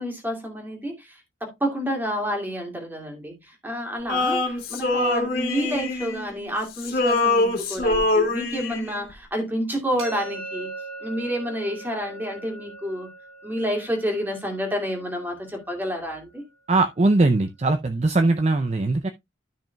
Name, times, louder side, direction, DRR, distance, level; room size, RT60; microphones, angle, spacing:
voice 1, 0.0-10.7 11.0-13.1 13.4-16.4, equal, 10° right, 2.3 m, -29 dB
Male singing, 4.1-6.5 6.8-9.0, left 2 dB, 50° left, 2.2 m, -24 dB
sound 1, 10.0-15.8, right 3 dB, 80° right, 4.5 m, -40 dB
voice 2, 16.7-19.1, right 2 dB, 35° right, 0.5 m, -20 dB
13.0 x 6.0 x 2.3 m
head